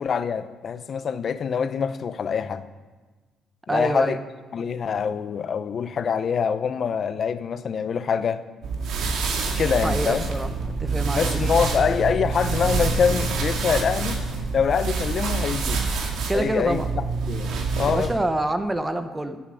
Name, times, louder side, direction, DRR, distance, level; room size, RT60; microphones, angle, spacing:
voice 1, 0.0-2.6 3.7-4.2 4.5-8.4 9.6-10.3 11.1-14.2 14.5-15.8 16.3-17.5 17.8-18.1, left 6 dB, 50° left, 13 dB, 0.7 m, -25 dB
voice 2, 3.7-4.2 9.8-10.5 10.8-11.4 16.3-16.9 17.9-19.4, right 1 dB, 15° right, 9 dB, 0.9 m, -26 dB
sound 1, 8.6-18.1, right 4 dB, 80° right, 2.1 m, -26 dB
15.5 x 8.7 x 5.2 m, 1.3 s
cardioid pair, 100°, 0 cm